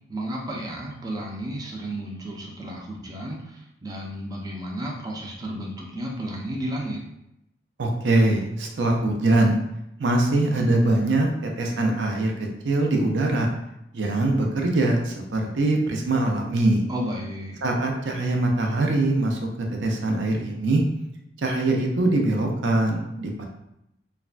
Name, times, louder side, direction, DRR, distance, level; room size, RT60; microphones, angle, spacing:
voice 1, 0.1-7.0 16.9-17.6, right 1 dB, 20° right, -2 dB, 0.4 m, -33 dB
voice 2, 7.8-9.6 10.0-11.3 11.6-13.5 13.9-16.8 17.6-19.4 19.8-20.8 21.4-23.4, right 2 dB, 80° right, 1 dB, 0.5 m, -22 dB
3.3 x 2.1 x 2.5 m, 0.82 s
head